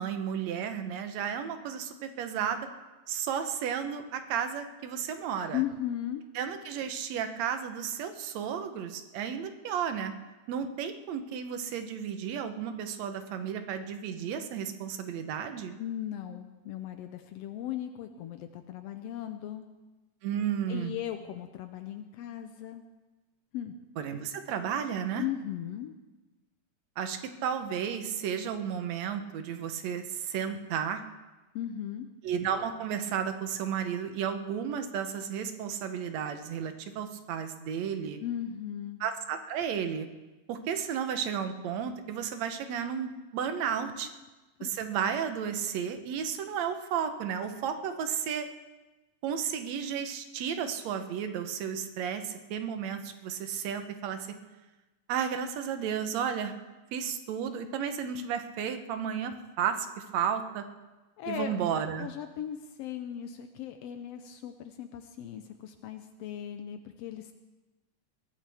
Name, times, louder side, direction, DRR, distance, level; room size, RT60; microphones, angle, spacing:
voice 1, 0.0-2.7 3.1-5.6 6.4-10.1 10.5-15.8 20.2-20.9 24.0-25.2 27.0-31.0 32.2-38.2 39.0-40.1 40.5-44.1 44.6-48.5 49.2-54.2 55.1-56.5 56.9-60.6 61.3-62.1, right 8 dB, 70° right, 8 dB, 2.0 m, -33 dB
voice 2, 5.5-6.2 15.8-19.7 20.7-22.8 23.5-23.7 25.2-25.9 31.5-32.1 38.2-39.0 44.0-44.1 44.6-44.7 61.2-61.6 62.0-67.3, left 11 dB, 85° left, 7 dB, 1.4 m, -37 dB
22.0 x 15.0 x 3.5 m, 1.1 s
omnidirectional pair, 3.6 m